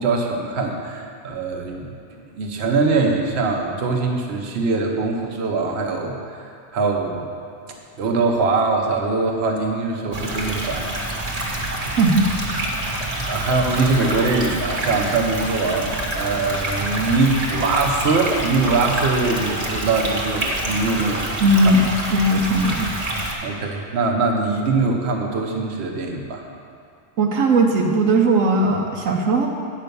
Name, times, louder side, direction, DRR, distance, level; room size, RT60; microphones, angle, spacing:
voice 1, 0.0-1.9 2.4-6.5 6.7-7.3 8.0-11.3 13.2-21.2 21.5-21.8 23.4-26.4, right 3 dB, 55° right, 1 dB, 1.2 m, -22 dB
sound 1, 10.1-23.3, right 1 dB, 30° right, 1.3 m, -27 dB
voice 2, 12.0-12.3 21.4-22.9 27.2-29.5, right 2 dB, 80° right, 1 dB, 1.2 m, -18 dB
9.1 x 5.5 x 6.8 m, 2.4 s
omnidirectional pair, 1.3 m